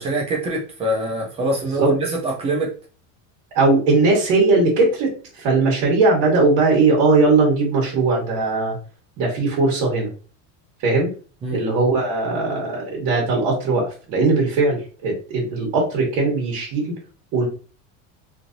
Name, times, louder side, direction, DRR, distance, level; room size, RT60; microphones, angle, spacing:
voice 1, 0.0-2.7 11.4-11.6, right 2 dB, 15° right, 0 dB, 0.4 m, -24 dB
voice 2, 3.5-8.8 9.2-10.1 10.8-11.1 11.5-17.0 17.3-17.5, right 3 dB, 45° right, -3 dB, 1.3 m, -19 dB
3.1 x 2.6 x 2.5 m, 0.37 s
supercardioid pair, 160°, 40 cm